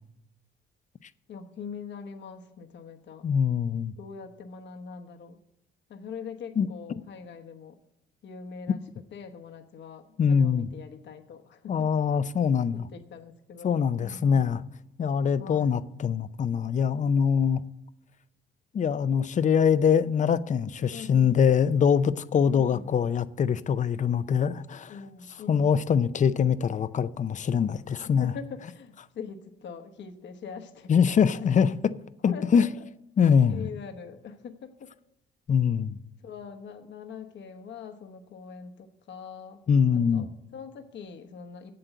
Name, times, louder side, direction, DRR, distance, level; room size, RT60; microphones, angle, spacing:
voice 1, 1.3-3.3 4.0-5.4 5.9-7.8 8.2-8.8 9.1-12.0 12.4-14.6 15.4-15.8 20.9-21.3 22.5-22.9 24.9-25.8 28.0-31.5 32.3-32.7 33.5-34.9 36.2-39.6 39.9-41.7, left 6 dB, 65° left, 1.1 m, -43 dB
voice 2, 3.2-3.9 6.6-6.7 10.2-10.7 11.7-12.9 13.6-14.6 15.0-17.6 18.7-24.9 25.5-28.3 30.9-31.7 32.2-32.7 33.2-33.7 35.5-36.0 39.7-40.3, left 7 dB, 40° left, 0.5 m, -23 dB
7.8 x 7.7 x 8.1 m
cardioid pair, 90°, 20 cm